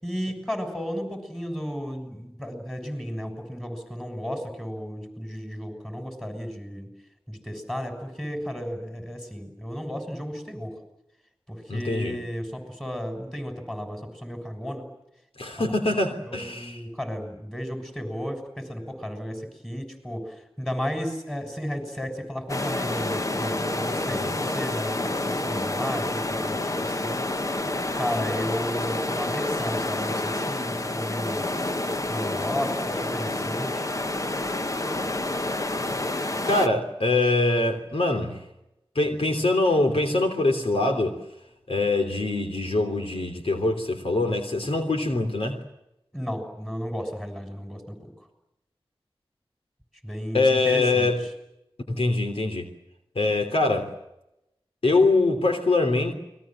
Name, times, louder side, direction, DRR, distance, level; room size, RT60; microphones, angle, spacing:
voice 1, 0.0-6.9 7.3-10.8 11.5-14.8 15.5-15.7 16.2-27.2 27.9-31.5 32.1-33.9 46.1-48.1 50.0-51.3, equal, 5° left, 6 dB, 6.9 m, -33 dB
voice 2, 11.7-12.2 15.4-16.8 24.2-24.4 36.2-38.4 38.9-41.2 41.7-45.6 50.3-51.2 51.9-52.7 53.1-53.9 54.8-56.1, left 2 dB, 80° left, 5 dB, 3.2 m, -23 dB
sound 1, 22.5-36.7, left 2 dB, 35° left, 1.0 m, -28 dB
29.5 x 21.5 x 7.7 m, 0.88 s
wide cardioid pair, 70°, 10 cm